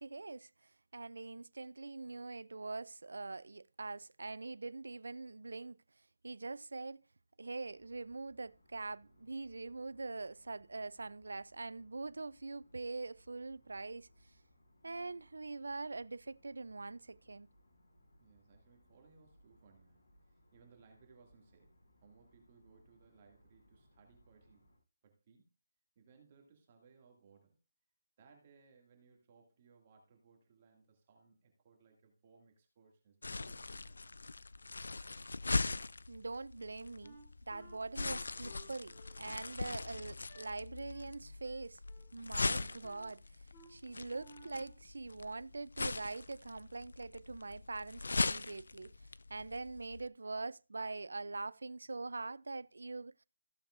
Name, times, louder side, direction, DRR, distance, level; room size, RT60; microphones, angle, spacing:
voice 1, 0.0-5.8 6.2-7.0 7.4-14.1 14.8-17.5 36.1-37.2 37.5-41.8 42.1-43.2 43.7-48.9 49.3-53.2, right 3 dB, 80° right, 0.4 m, -43 dB
sound 1, 7.5-24.8, equal, 55° left, 4.8 m, -68 dB
voice 2, 18.2-20.0 20.3-21.7 22.0-24.7 25.0-25.5 26.0-27.6 28.2-34.0, right 5 dB, 30° right, 2.1 m, -65 dB
sound 2, 33.2-50.1, left 3 dB, 75° left, 0.4 m, -40 dB
Wind instrument woodwind instrument, 37.0-40.5 40.9-41.2 41.4-42.1 42.4-43.1 43.5-43.7 44.1-44.8, equal, 25° left, 3.1 m, -58 dB
15.0 x 7.0 x 2.5 m
figure-of-eight pair, 165°, 0 cm